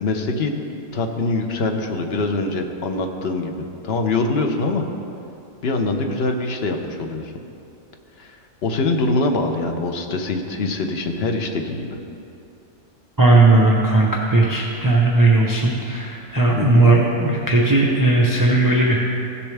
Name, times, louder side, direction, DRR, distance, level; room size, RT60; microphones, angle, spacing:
voice 1, 0.0-3.5 3.8-4.8 5.6-7.3 8.2-12.0 16.5-16.8, left 3 dB, 50° left, 4 dB, 0.9 m, -24 dB
voice 2, 13.2-19.0, right 2 dB, 20° right, -3 dB, 0.7 m, -16 dB
15.5 x 7.1 x 3.4 m, 2.7 s
omnidirectional pair, 1.5 m